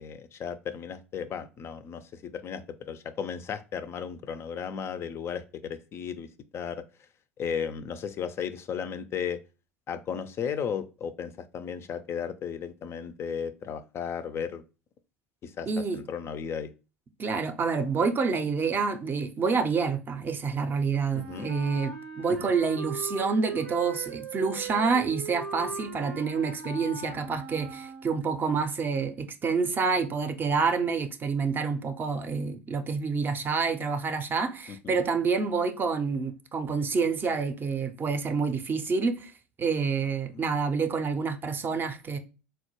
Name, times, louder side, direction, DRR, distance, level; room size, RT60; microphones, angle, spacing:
voice 1, 0.0-6.3 6.5-6.8 7.4-9.4 9.9-14.6 15.4-15.7 15.9-16.7 21.1-21.5 34.7-34.9 40.3-40.4, left 7 dB, 35° left, 0.3 m, -35 dB
voice 2, 15.7-16.0 17.2-39.3 39.6-42.2, right 5 dB, 30° right, 0.5 m, -28 dB
Wind instrument woodwind instrument, 21.0-28.4, right 5 dB, 90° right, 0.6 m, -39 dB
4.0 x 2.1 x 2.9 m
hypercardioid pair, 75°, 7 cm